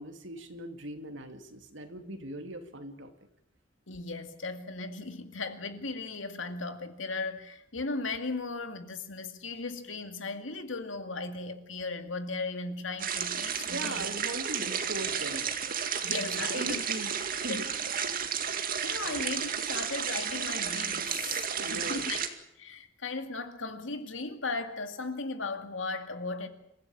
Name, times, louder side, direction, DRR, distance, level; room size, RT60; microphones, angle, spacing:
voice 1, 0.0-3.1 13.6-15.5 16.3-17.1 17.4-17.7 19.0-19.2 21.6-22.0, right 1 dB, 75° right, 2.6 m, -40 dB
voice 2, 3.9-14.1 16.0-16.8 17.5-17.7 18.5-22.2 22.6-26.5, left 3 dB, 80° left, 2.3 m, -37 dB
sound 1, 13.0-22.3, right 7 dB, 50° right, 2.2 m, -32 dB
27.0 x 15.5 x 8.8 m
head